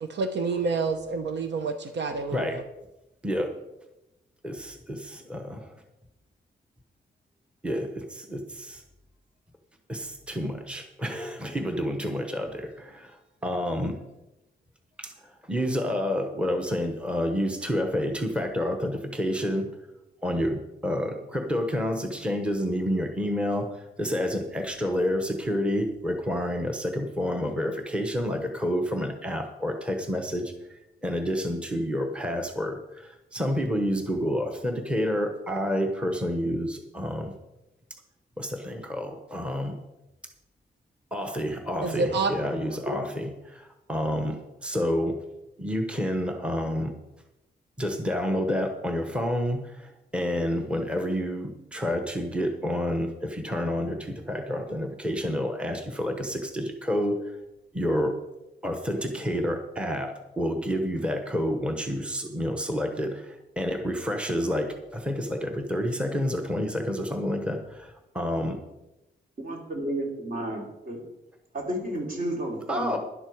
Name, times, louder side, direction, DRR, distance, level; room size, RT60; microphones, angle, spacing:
voice 1, 0.0-2.6 41.8-42.3, right 4 dB, 80° right, 7 dB, 0.9 m, -28 dB
voice 2, 4.4-5.7 7.6-8.8 9.9-13.2 13.4-14.0 15.0-19.7 20.2-37.3 38.4-39.8 41.1-45.2 45.6-47.0 47.8-57.2 57.7-58.1 58.6-68.6 72.7-73.0, equal, 5° right, 4 dB, 1.0 m, -29 dB
voice 3, 69.4-71.0 71.5-73.0, right 1 dB, 50° right, 0 dB, 3.2 m, -32 dB
12.0 x 11.0 x 4.7 m, 0.95 s
wide cardioid pair, 165°, 18 cm